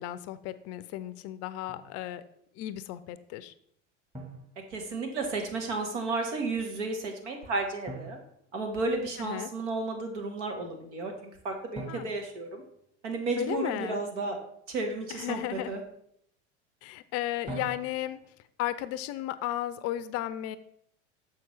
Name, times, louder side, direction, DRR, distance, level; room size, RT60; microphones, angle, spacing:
voice 1, 0.0-2.2 2.6-3.5 9.2-9.5 11.9-12.1 13.4-14.0 15.1-15.8 16.8-18.2 18.6-20.6, left 13 dB, 45° left, 14 dB, 0.5 m, -34 dB
Drum, 1.7-2.0 4.1-5.3 7.9-9.3 11.7-13.5 17.5-18.4, right 2 dB, 20° right, 1.9 m, -45 dB
voice 2, 4.7-8.2 8.5-12.6 13.0-14.4 14.7-15.4 15.7-15.8, right 3 dB, 75° right, 3 dB, 1.4 m, -33 dB
7.0 x 5.8 x 3.2 m, 0.71 s
figure-of-eight pair, 75°, 36 cm